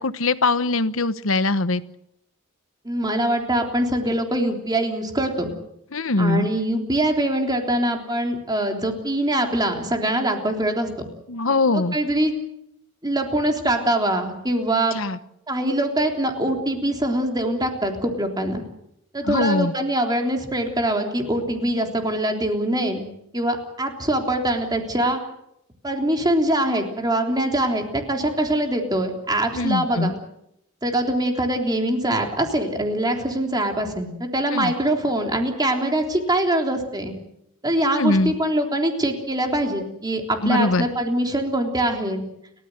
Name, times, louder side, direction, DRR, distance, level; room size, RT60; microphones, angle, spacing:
voice 1, 0.0-1.8 5.9-6.5 11.3-12.0 14.9-15.2 19.2-19.7 29.5-30.1 34.5-34.7 37.9-38.3 40.4-40.9, left 2 dB, 70° left, 13 dB, 1.1 m, -22 dB
voice 2, 2.8-5.5 6.2-10.9 11.7-12.3 13.0-15.0 15.5-18.6 19.1-23.1 23.3-25.2 25.8-30.2 30.8-37.1 37.6-42.2, right 1 dB, 20° right, 3 dB, 3.5 m, -23 dB
30.0 x 14.0 x 8.0 m, 0.80 s
head